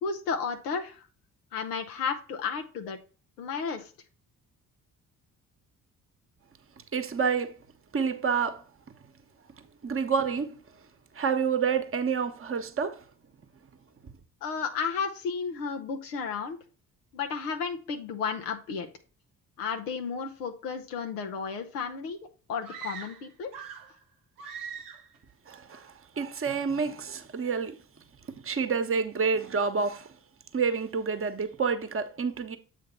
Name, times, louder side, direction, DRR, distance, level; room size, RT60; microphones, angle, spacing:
voice 1, 0.0-1.1 1.5-3.0 3.4-3.9 14.4-16.6 17.1-18.9 19.6-22.2 22.5-23.5, left 5 dB, 90° left, 0.7 m, -33 dB
voice 2, 6.9-7.6 7.9-8.6 9.8-10.6 11.1-13.0 25.5-27.8 28.4-30.1 30.5-32.6, right 5 dB, 30° right, 1.0 m, -28 dB
sound 1, 22.6-24.0 24.4-25.2, right 7 dB, 90° right, 0.9 m, -41 dB
7.5 x 3.4 x 5.5 m
hypercardioid pair, 45°, 45 cm